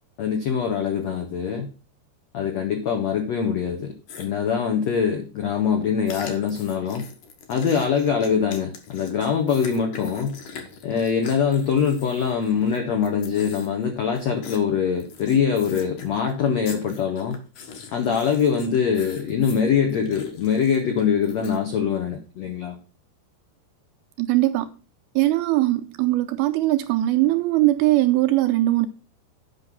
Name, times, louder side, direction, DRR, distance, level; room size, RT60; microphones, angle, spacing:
voice 1, 0.2-1.7 2.3-7.0 7.5-10.4 10.8-17.4 17.9-22.8, left 7 dB, 80° left, 1.5 m, -23 dB
sound 1, 4.1-4.3 6.1-12.8 13.0-13.8 14.1-14.6 15.0-16.3 16.6-21.6, left 6 dB, 60° left, 2.5 m, -42 dB
voice 2, 24.2-24.7 25.2-28.9, right 16 dB, 80° right, 2.3 m, -20 dB
8.8 x 5.6 x 6.0 m
omnidirectional pair, 4.9 m